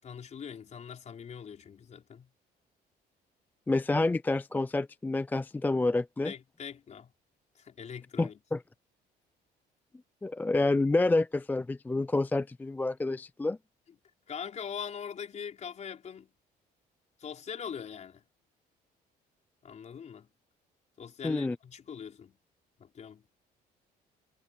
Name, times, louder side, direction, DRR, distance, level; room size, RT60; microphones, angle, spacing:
voice 1, 0.0-2.3 6.2-7.1 7.5-8.4 14.3-16.3 17.2-18.2 19.6-20.3 21.0-22.4 22.8-23.2, left 7 dB, 45° left, 4.6 m, -42 dB
voice 2, 3.7-6.3 8.2-8.6 10.2-13.6 21.2-21.6, left 2 dB, 10° left, 0.3 m, -28 dB
cardioid pair, 110°, 17 cm